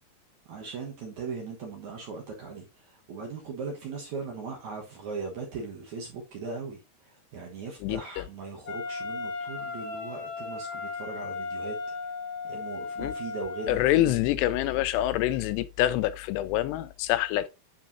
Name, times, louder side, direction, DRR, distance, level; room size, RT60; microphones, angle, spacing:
voice 1, 0.5-11.8 12.4-14.1, right 4 dB, 65° right, 2.0 m, -39 dB
voice 2, 7.8-8.3 13.0-13.1 13.7-17.5, left 14 dB, 85° left, 2.6 m, -26 dB
Wind instrument woodwind instrument, 8.6-13.9, left 4 dB, 60° left, 2.1 m, -36 dB
9.1 x 5.2 x 2.6 m
omnidirectional pair, 4.9 m